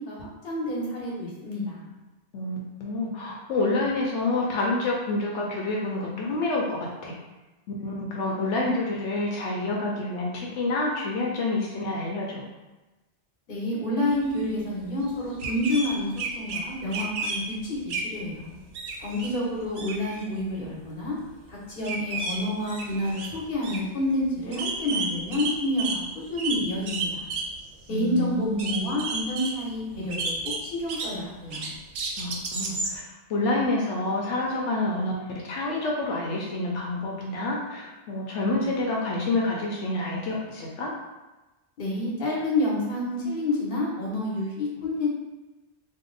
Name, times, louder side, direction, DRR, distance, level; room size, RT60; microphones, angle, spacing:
voice 1, 0.1-1.9 13.5-18.5 19.0-21.2 21.5-27.3 27.9-30.3 30.6-31.7 41.8-45.1, left 1 dB, 50° left, -5 dB, 1.1 m, -29 dB
voice 2, 2.3-7.1 7.8-12.5 27.9-28.9 32.2-33.0 33.3-35.1 35.4-40.9, left 2 dB, 85° left, -3 dB, 0.9 m, -28 dB
sound 1, 15.1-15.2 15.4-16.6 16.9-17.4 17.9-18.1 18.5-19.3 19.6-20.2 21.8-22.4 22.7-23.3 23.6-23.8 24.2-24.3 24.5-26.0 26.4-27.6 27.9-28.0 28.5-29.5 30.1-31.1 31.5-33.0, right 4 dB, 90° right, 0.9 m, -31 dB
2.7 x 2.1 x 3.8 m, 1.1 s
omnidirectional pair, 1.2 m